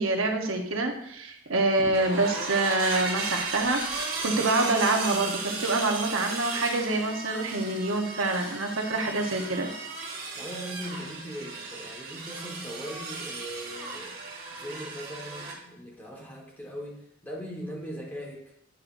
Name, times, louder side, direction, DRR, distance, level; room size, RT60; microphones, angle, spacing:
voice 1, 0.0-9.7, right 2 dB, 80° right, 3 dB, 0.9 m, -26 dB
sound 1, 1.9-15.5, right 3 dB, 45° right, 1.8 m, -35 dB
voice 2, 10.3-14.2 14.5-18.4, equal, 10° left, -2 dB, 1.4 m, -40 dB
9.3 x 6.3 x 2.6 m, 0.74 s
head